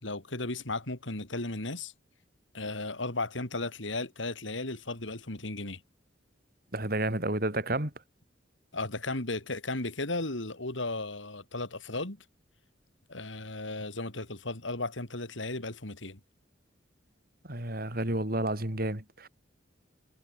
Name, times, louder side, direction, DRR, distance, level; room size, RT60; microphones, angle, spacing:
voice 1, 0.0-1.9 2.5-5.8 8.7-12.2 13.1-16.2, left 2 dB, 85° left, 3.8 m, -35 dB
voice 2, 6.7-7.9 17.4-19.3, right 1 dB, 50° right, 3.9 m, -31 dB
head